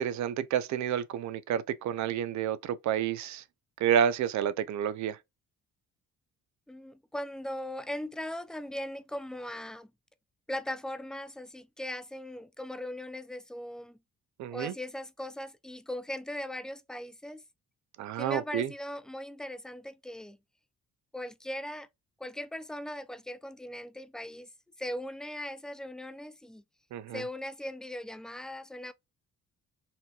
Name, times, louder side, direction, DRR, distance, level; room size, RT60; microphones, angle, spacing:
voice 1, 0.0-3.4 3.8-5.2 14.4-14.7 18.0-18.7 26.9-27.2, right 9 dB, 70° right, 0.5 m, -29 dB
voice 2, 6.7-9.9 10.5-14.0 14.5-17.4 18.2-20.4 21.1-21.9 22.2-24.5 24.8-26.6 27.1-28.9, left 1 dB, ahead, 0.3 m, -39 dB
4.2 x 2.7 x 2.3 m
cardioid pair, 90°, 30 cm